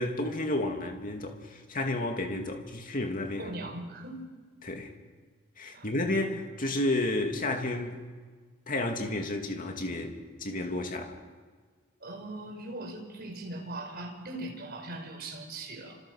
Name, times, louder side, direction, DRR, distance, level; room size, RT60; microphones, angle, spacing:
voice 1, 0.0-3.5 4.6-4.9 5.6-8.0 8.7-11.2, left 1 dB, 40° left, 2.8 m, -31 dB
voice 2, 3.4-4.2 5.7-5.9 12.0-16.0, right 2 dB, 45° right, 5.3 m, -40 dB
29.5 x 27.0 x 6.7 m
head